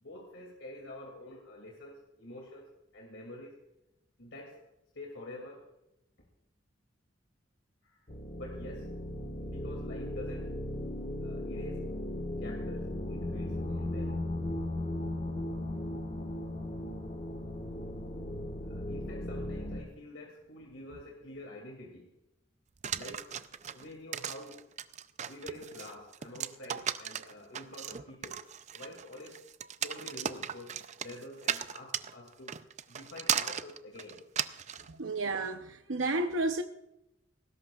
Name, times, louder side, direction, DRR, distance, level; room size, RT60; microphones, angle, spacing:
voice 1, 0.0-3.6 4.2-4.7 4.9-5.7 7.8-8.0 8.3-8.9 9.4-10.6 11.2-11.9 12.4-14.2 18.7-22.1 22.9-23.3 23.7-24.6 25.3-28.5 28.7-29.4 29.8-32.6 32.9-34.2, left 1 dB, 85° left, 2.5 m, -47 dB
sound 1, 8.1-19.8, left 1 dB, 45° left, 1.5 m, -37 dB
sound 2, 22.8-34.9, right 8 dB, 40° right, 0.5 m, -36 dB
voice 2, 34.8-36.6, right 2 dB, 90° right, 0.8 m, -32 dB
19.0 x 16.5 x 2.4 m
head